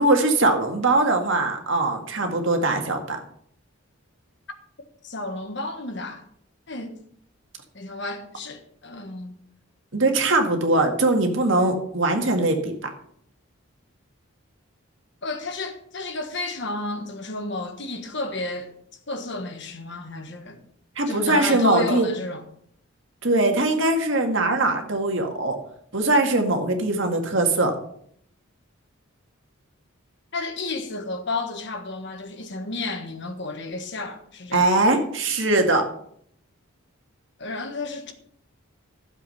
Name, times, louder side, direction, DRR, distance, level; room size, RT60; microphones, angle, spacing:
voice 1, 0.0-3.2 9.9-12.7 21.0-22.1 23.2-25.6 25.9-27.7 34.5-35.8, right 2 dB, 60° right, 2.0 m, -21 dB
voice 2, 5.0-6.2 6.7-7.0 7.7-9.4 15.2-18.8 19.1-20.6 21.1-22.5 30.3-34.7 37.4-38.1, left 2 dB, 55° left, 1.5 m, -32 dB
13.0 x 7.5 x 5.6 m
head